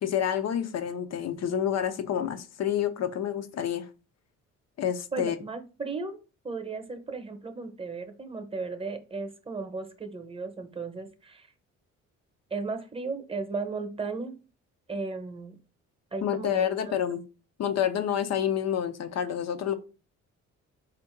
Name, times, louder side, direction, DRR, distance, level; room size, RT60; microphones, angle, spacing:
voice 1, 0.0-3.9 4.8-5.4 16.2-17.2 17.6-19.7, left 9 dB, 60° left, 0.7 m, -28 dB
voice 2, 5.1-6.2 6.4-11.5 12.5-14.4 14.9-15.5 16.1-17.0, right 4 dB, 20° right, 0.9 m, -35 dB
4.4 x 2.5 x 4.4 m
cardioid pair, 90°, 30 cm